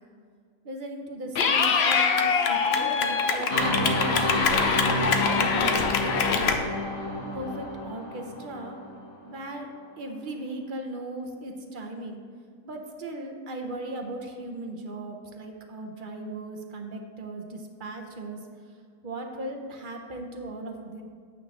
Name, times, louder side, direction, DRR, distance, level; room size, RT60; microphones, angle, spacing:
voice 1, 0.6-4.4 4.8-6.6 7.3-8.8 9.2-12.2 12.6-18.4 19.0-21.0, right 1 dB, 45° right, 3 dB, 0.7 m, -37 dB
Clapping / Cheering, 1.3-6.5, left 5 dB, 60° left, 0.7 m, -24 dB
sound 1, 3.5-9.2, left 1 dB, 20° left, 1.2 m, -29 dB
8.9 x 3.9 x 6.5 m, 2.1 s
omnidirectional pair, 1.7 m